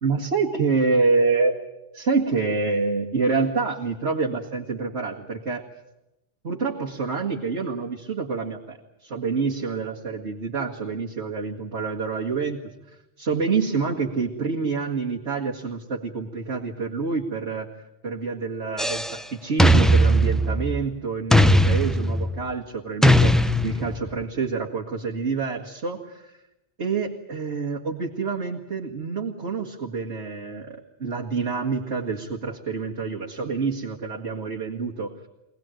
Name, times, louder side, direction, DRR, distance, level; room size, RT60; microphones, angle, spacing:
voice 1, 0.0-1.6 1.9-5.7 6.4-8.8 9.0-12.7 13.2-17.7 18.0-26.3 26.8-35.1, right 4 dB, 70° right, -2 dB, 2.4 m, -27 dB
sound 1, 18.8-19.2 19.6-20.9 21.3-22.4 23.0-24.1, equal, ahead, 0.6 m, -18 dB
25.0 x 18.5 x 9.1 m, 0.91 s
omnidirectional pair, 1.2 m